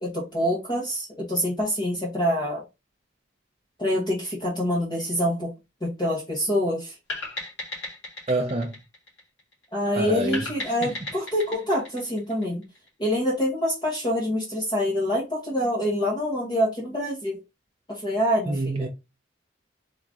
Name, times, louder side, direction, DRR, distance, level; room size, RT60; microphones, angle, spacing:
voice 1, 0.0-2.6 3.8-5.5 5.8-7.0 9.7-12.6 13.0-17.4 17.9-18.9, equal, 25° left, 1.1 m, -26 dB
sound 1, 7.1-9.6 10.3-12.9, left 2 dB, 70° left, 2.3 m, -36 dB
voice 2, 8.3-8.7 9.9-10.4 10.8-10.9 18.5-18.9, right 1 dB, 30° right, 0.5 m, -26 dB
3.7 x 2.9 x 3.7 m
head